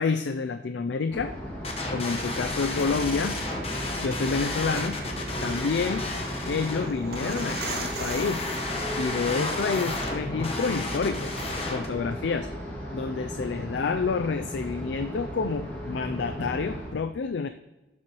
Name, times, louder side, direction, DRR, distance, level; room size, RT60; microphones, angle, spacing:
voice 1, 0.0-1.3 1.9-3.4 4.0-5.0 5.4-6.1 6.5-8.5 9.0-11.4 11.7-12.5 12.9-17.5, left 5 dB, 75° left, 9 dB, 0.4 m, -28 dB
sound 1, 1.1-16.9, equal, 10° left, 2.3 m, -36 dB
sound 2, 1.6-11.9, left 2 dB, 35° left, 1.2 m, -33 dB
sound 3, 3.0-9.2, right 7 dB, 55° right, 0.4 m, -42 dB
17.5 x 7.5 x 3.1 m, 1.1 s
head